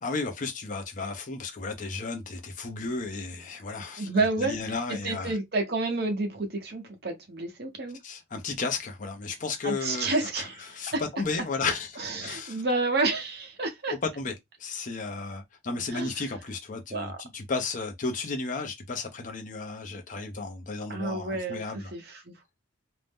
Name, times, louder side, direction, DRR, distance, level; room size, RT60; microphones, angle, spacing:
voice 1, 0.0-4.1 4.4-5.4 8.0-12.6 14.2-14.3 14.6-21.9, left 4 dB, 40° left, 0.5 m, -34 dB
voice 2, 4.0-4.6 5.0-8.0 9.6-11.0 12.0-13.9 15.9-16.1 16.9-17.2 20.9-22.3, right 3 dB, 50° right, 0.8 m, -30 dB
2.6 x 2.0 x 3.4 m
head